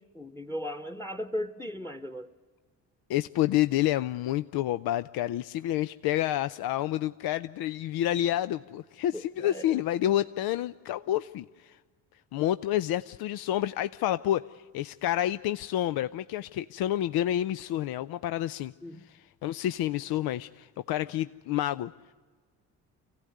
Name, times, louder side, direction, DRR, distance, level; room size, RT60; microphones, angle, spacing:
voice 1, 0.0-2.3 9.1-9.7 18.8-19.1, equal, 5° left, 11 dB, 1.2 m, -37 dB
voice 2, 3.1-11.8 12.3-18.7 19.1-21.9, left 13 dB, 50° left, 13 dB, 0.6 m, -29 dB
26.0 x 16.0 x 9.3 m, 1.5 s
hypercardioid pair, 50°, 49 cm